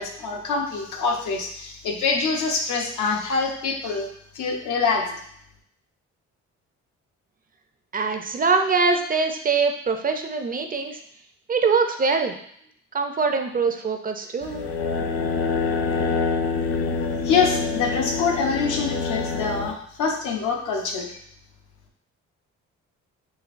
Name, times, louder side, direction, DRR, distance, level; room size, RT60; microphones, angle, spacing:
voice 1, 0.0-4.1 4.3-5.1 17.2-21.1, left 4 dB, 80° left, 1 dB, 0.8 m, -25 dB
voice 2, 7.9-11.0 11.5-12.3 12.9-14.7, right 4 dB, 30° right, 5 dB, 0.4 m, -23 dB
sound 1, 14.4-19.7, left 5 dB, 50° left, 0.5 m, -26 dB
5.2 x 2.6 x 2.5 m, 0.67 s
cardioid pair, 90°, 30 cm